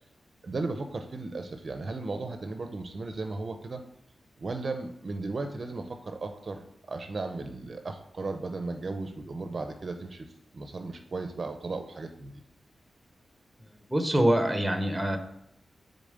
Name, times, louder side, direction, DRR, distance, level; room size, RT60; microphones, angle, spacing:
voice 1, 0.4-3.8 4.4-10.3 10.5-12.4, right 3 dB, 35° right, 6 dB, 0.6 m, -35 dB
voice 2, 13.9-15.2, right 1 dB, 5° right, 6 dB, 0.8 m, -24 dB
6.8 x 4.1 x 6.5 m, 0.78 s
wide cardioid pair, 180°, 0 cm